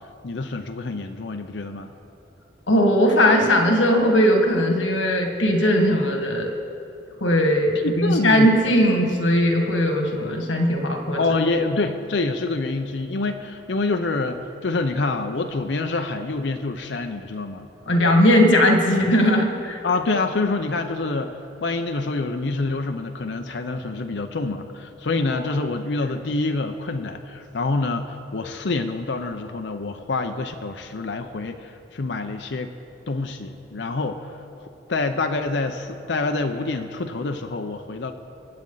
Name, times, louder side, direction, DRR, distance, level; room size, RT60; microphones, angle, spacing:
voice 1, 0.2-1.9 7.8-8.5 11.2-17.7 19.8-32.7 33.1-38.1, left 3 dB, 65° left, 6 dB, 0.7 m, -26 dB
voice 2, 2.7-6.5 7.2-11.2 17.9-19.8 26.0-26.1, equal, 90° left, 3 dB, 1.8 m, -19 dB
25.0 x 8.6 x 4.0 m, 2.7 s
head